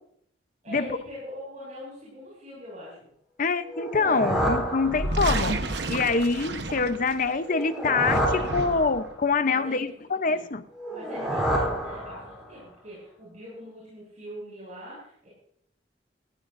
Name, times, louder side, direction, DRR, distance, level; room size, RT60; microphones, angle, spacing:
voice 1, 0.6-3.1 9.5-10.5 10.9-15.3, left 1 dB, 45° right, -6 dB, 6.5 m, -42 dB
voice 2, 3.4-5.6 5.9-10.6, left 4 dB, 50° left, 11 dB, 0.9 m, -25 dB
sound 1, 3.7-5.5 7.4-9.3 10.7-12.6, equal, 5° right, 3.8 m, -29 dB
sound 2, 4.8-7.4 7.9-9.0, right 2 dB, 70° right, 1.2 m, -31 dB
18.5 x 16.0 x 2.7 m, 0.68 s
head